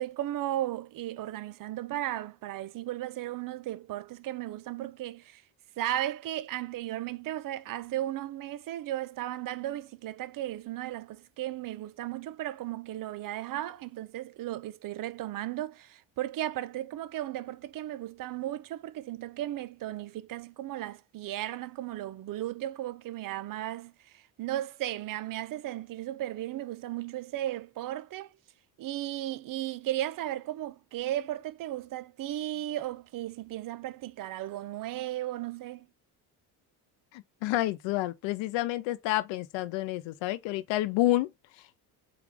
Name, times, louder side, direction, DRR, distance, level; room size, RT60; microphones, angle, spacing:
voice 1, 0.0-5.4 5.8-28.3 28.8-35.9, right 13 dB, 50° right, 0.5 m, -35 dB
voice 2, 37.1-41.3, left 16 dB, 80° left, 0.6 m, -29 dB
3.5 x 2.4 x 3.2 m
supercardioid pair, 75°, 44 cm